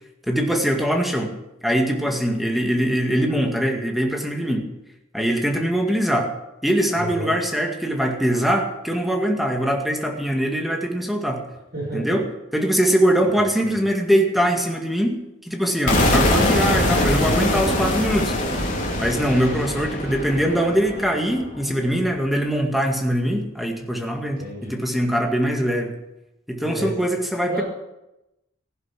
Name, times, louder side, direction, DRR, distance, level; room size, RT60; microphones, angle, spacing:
voice 1, 0.3-1.3 1.6-4.7 5.1-6.3 6.6-11.4 11.9-12.2 12.5-18.3 19.0-25.9 26.5-27.6, equal, ahead, 2 dB, 2.0 m, -22 dB
voice 2, 7.0-7.4 11.7-12.2 13.3-13.8 24.1-24.8 26.6-27.0 27.5-27.6, right 1 dB, 55° right, -3 dB, 6.6 m, -32 dB
sound 1, 15.9-21.7, left 1 dB, 45° left, 3.5 m, -22 dB
15.5 x 11.0 x 6.0 m, 0.92 s
head